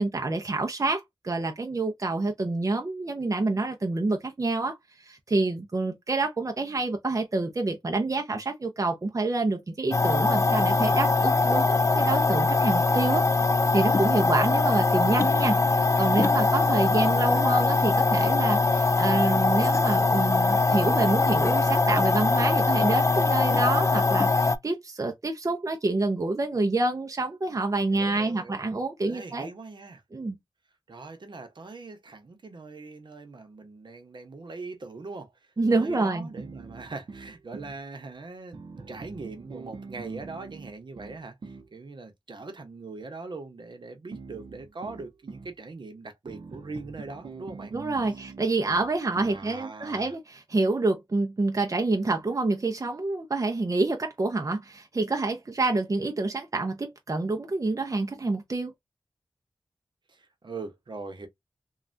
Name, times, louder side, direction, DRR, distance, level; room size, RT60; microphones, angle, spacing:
voice 1, 0.0-13.2 13.7-29.5 30.1-30.4 35.6-36.3 47.7-58.7, right 3 dB, 40° right, 0.6 m, -27 dB
sound 1, 9.9-24.6, left 3 dB, 35° left, 0.3 m, -22 dB
voice 2, 16.7-17.4 27.9-28.6 29.0-30.0 30.9-38.6 38.9-47.7 48.1-48.3 49.1-50.1 60.1-61.3, right 3 dB, 70° right, 0.9 m, -41 dB
sound 2, 36.4-37.8 38.5-41.7 44.1-45.5 46.3-49.5, right 4 dB, 85° right, 0.7 m, -43 dB
3.2 x 2.4 x 2.5 m
wide cardioid pair, 55°, 8 cm